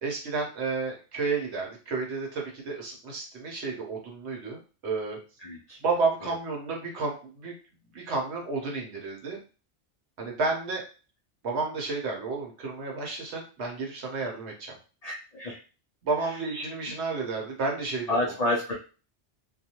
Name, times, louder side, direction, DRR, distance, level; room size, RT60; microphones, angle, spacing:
voice 1, 0.0-5.2 5.8-7.5 7.9-9.4 10.2-10.8 11.4-14.7 16.0-18.2, right 4 dB, 70° right, 0 dB, 1.1 m, -31 dB
voice 2, 5.4-5.8 15.0-15.6 16.3-16.4 18.1-18.7, left 1 dB, 65° left, -1 dB, 0.4 m, -29 dB
2.4 x 2.2 x 2.8 m, 0.35 s
omnidirectional pair, 1.2 m